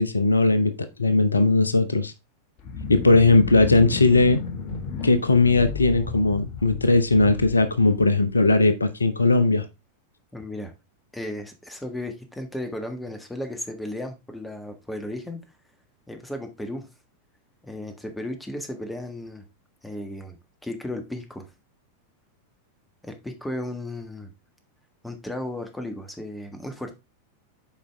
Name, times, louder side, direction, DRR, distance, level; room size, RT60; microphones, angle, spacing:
voice 1, 0.0-2.1 2.9-4.4 5.0-9.7, left 3 dB, 80° left, 0.7 m, -19 dB
sound 1, 2.6-8.6, left 5 dB, 35° left, 1.7 m, -33 dB
voice 2, 10.3-10.7 11.1-15.4 16.1-16.9 17.6-19.4 19.8-20.4 20.6-21.5 23.0-24.3 25.0-26.9, left 1 dB, 5° left, 1.5 m, -34 dB
8.4 x 5.0 x 3.4 m
figure-of-eight pair, 90°, 0 cm